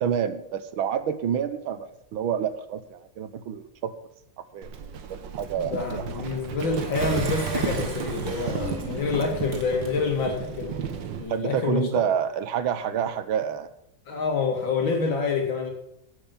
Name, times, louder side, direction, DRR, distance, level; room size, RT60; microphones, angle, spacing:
voice 1, 0.0-3.9 4.5-4.7 5.1-6.2 11.3-13.7, right 8 dB, 85° right, 12 dB, 1.8 m, -28 dB
Livestock farm animals working animals, 4.6-11.3, right 7 dB, 65° right, 1.7 m, -33 dB
voice 2, 5.6-10.7 11.2-12.0 14.1-15.7, left 4 dB, 70° left, 3 dB, 3.0 m, -27 dB
Engine, 6.9-10.4 10.9-11.0 11.2-11.3, right 3 dB, 40° right, 1.9 m, -38 dB
11.0 x 8.5 x 7.4 m, 0.77 s
omnidirectional pair, 2.2 m